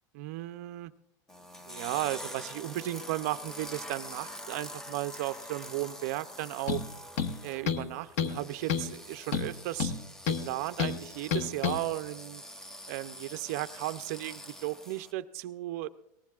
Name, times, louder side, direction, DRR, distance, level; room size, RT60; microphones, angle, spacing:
voice 1, 0.1-0.9 1.7-6.8 7.4-9.9 10.3-12.4 12.8-15.9, right 16 dB, 55° right, 11 dB, 0.5 m, -35 dB
sound 1, 1.3-15.1, left 1 dB, 5° left, 0.5 m, -45 dB
sound 2, 6.7-6.9 7.2-7.9 8.2-8.4 8.7-8.9 9.3-10.5 10.8-11.0 11.3-11.8, left 7 dB, 55° left, 1.0 m, -30 dB
22.0 x 19.0 x 2.4 m, 0.85 s
supercardioid pair, 175°, 10 cm